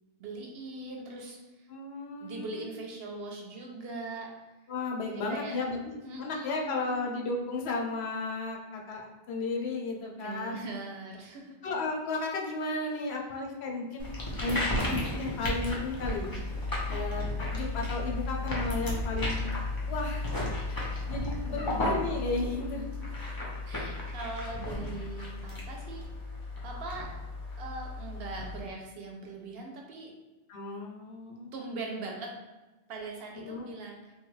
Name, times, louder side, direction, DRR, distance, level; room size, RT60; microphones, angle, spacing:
voice 1, 0.2-1.7 2.2-4.3 5.1-5.6 6.0-7.0 10.2-11.6 12.7-12.8 21.5-21.8 23.6-26.1 26.6-27.1 27.6-30.1 31.5-32.3 32.9-34.1, right 3 dB, 65° right, 0 dB, 0.8 m, -41 dB
voice 2, 1.7-2.7 4.7-10.6 11.6-14.1 14.4-16.3 16.9-17.2 17.5-19.4 19.9-22.9 30.5-31.5 33.4-33.7, left 3 dB, 70° left, 1 dB, 0.8 m, -34 dB
sound 1, 14.0-28.6, left 2 dB, 25° left, 0.5 m, -34 dB
3.1 x 2.2 x 3.1 m, 1.2 s
omnidirectional pair, 1.2 m